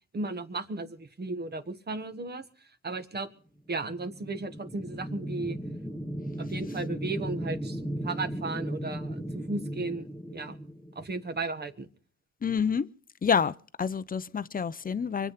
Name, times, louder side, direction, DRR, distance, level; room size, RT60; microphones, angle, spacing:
voice 1, 0.1-2.4 2.8-3.3 3.7-5.6 6.5-10.1 10.3-10.6 10.9-11.9, right 3 dB, 35° right, 1.6 m, -35 dB
sound 1, 3.9-11.4, right 1 dB, ahead, 1.2 m, -36 dB
voice 2, 12.4-12.9 13.2-13.5 13.8-15.3, left 6 dB, 30° left, 0.8 m, -27 dB
25.0 x 8.3 x 5.9 m
cardioid pair, 90°, 30 cm